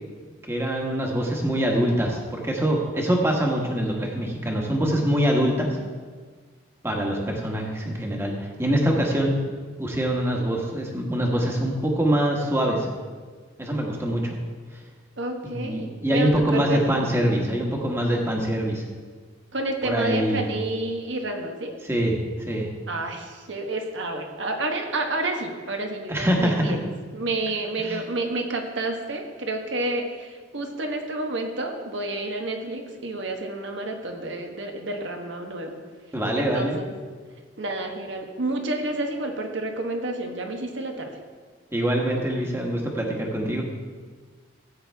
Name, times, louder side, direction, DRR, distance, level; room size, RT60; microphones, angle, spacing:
voice 1, 0.4-5.7 6.8-9.4 9.8-12.9 13.6-14.4 15.4-18.8 19.8-20.4 21.8-22.2 22.5-22.7 26.1-26.7 27.8-28.0 36.1-36.8 41.7-43.6, right 1 dB, 10° right, 0 dB, 1.3 m, -24 dB
voice 2, 15.2-17.1 19.5-21.8 22.9-26.8 27.1-35.8 36.4-36.9 37.6-41.2, right 2 dB, 65° right, 3 dB, 1.2 m, -30 dB
14.0 x 8.6 x 3.5 m, 1.6 s
head